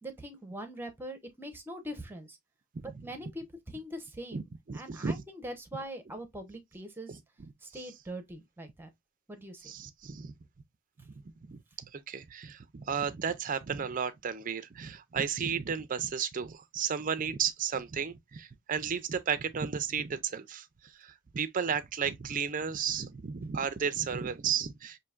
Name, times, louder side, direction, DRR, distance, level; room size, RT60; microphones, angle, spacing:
voice 1, 0.0-2.4 3.0-4.4 4.7-7.1 7.6-8.9 9.3-9.7, equal, 10° right, 0.8 m, -42 dB
voice 2, 2.7-3.1 4.3-4.4 4.7-5.2 7.1-7.5 7.8-7.9 9.6-10.3 11.2-25.0, right 7 dB, 40° right, 0.4 m, -34 dB
5.6 x 2.8 x 2.3 m
head